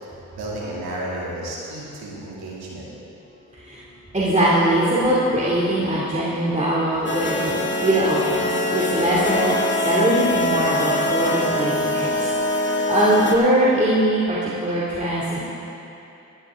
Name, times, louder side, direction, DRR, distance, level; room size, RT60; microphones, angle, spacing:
voice 1, 0.3-2.9, right 1 dB, 90° right, -5 dB, 2.7 m, -32 dB
voice 2, 4.1-9.6 9.8-12.3 12.6-15.5, right 1 dB, 20° right, -8 dB, 2.6 m, -21 dB
sound 1, 7.1-13.4, left 1 dB, 30° left, 1.6 m, -23 dB
13.5 x 13.0 x 3.7 m, 2.9 s
supercardioid pair, 50°, 37 cm